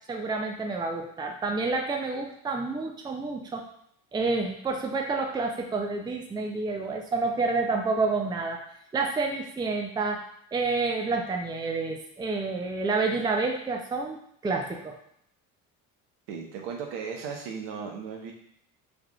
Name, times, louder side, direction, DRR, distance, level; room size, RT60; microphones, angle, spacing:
voice 1, 0.1-3.7 4.1-8.6 8.9-10.2 10.5-14.2 14.4-15.0, right 3 dB, 10° right, 2 dB, 0.5 m, -29 dB
voice 2, 16.3-18.3, right 6 dB, 70° right, 1 dB, 0.9 m, -36 dB
3.6 x 3.2 x 2.4 m, 0.70 s
hypercardioid pair, 70°, 42 cm